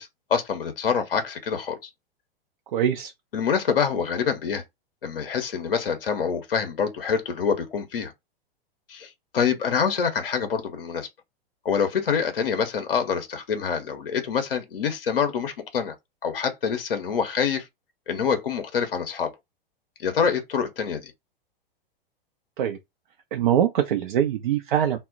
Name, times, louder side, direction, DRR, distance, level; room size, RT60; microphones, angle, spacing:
voice 1, 0.0-1.9 3.3-4.6 5.0-8.1 8.9-11.1 11.6-16.0 16.2-17.7 18.1-19.3 20.0-21.1, left 6 dB, 65° left, 0.7 m, -26 dB
voice 2, 2.7-3.1 22.6-22.8 23.3-25.0, right 10 dB, 55° right, 0.5 m, -23 dB
2.1 x 2.0 x 3.7 m
figure-of-eight pair, 95°, 30 cm